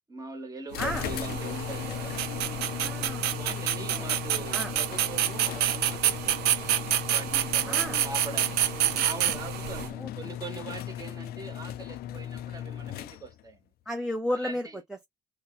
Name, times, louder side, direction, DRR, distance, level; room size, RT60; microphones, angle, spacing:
voice 1, 0.1-2.2 3.3-6.6 7.1-13.6 14.3-14.8, right 2 dB, 20° right, 1.1 m, -42 dB
sound 1, 0.7-13.5, left 11 dB, 65° left, 0.4 m, -37 dB
sound 2, 0.7-9.9, right 12 dB, 75° right, 0.5 m, -28 dB
voice 2, 2.7-3.6 3.9-4.0 4.5-4.7 7.7-8.0 10.0-10.1 13.9-14.7, left 1 dB, 5° right, 0.6 m, -33 dB
2.7 x 2.2 x 4.0 m
cardioid pair, 110°, 17 cm